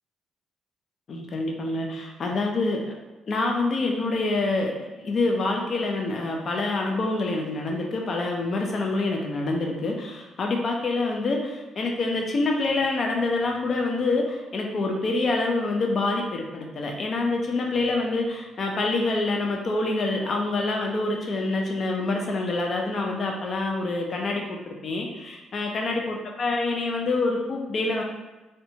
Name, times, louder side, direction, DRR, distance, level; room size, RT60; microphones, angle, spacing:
voice 1, 1.1-2.9 3.3-28.0, left 2 dB, 50° left, 1 dB, 0.4 m, -26 dB
2.5 x 2.2 x 2.7 m, 1.2 s
cardioid pair, 90°, 0 cm